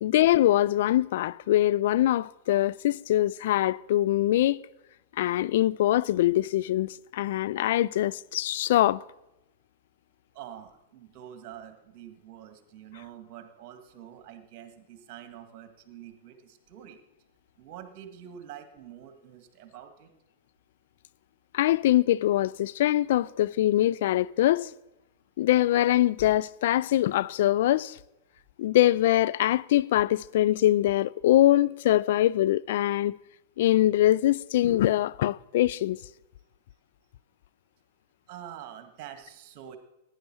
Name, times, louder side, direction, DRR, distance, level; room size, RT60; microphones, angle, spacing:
voice 1, 0.0-4.6 5.2-9.0 21.5-24.7 25.4-28.0 28.6-33.1 33.6-36.0, left 14 dB, 60° left, 0.3 m, -23 dB
voice 2, 10.3-17.0 17.6-20.1 38.3-39.8, right 10 dB, 45° right, 1.8 m, -46 dB
16.5 x 10.0 x 4.4 m
figure-of-eight pair, 100°, 0 cm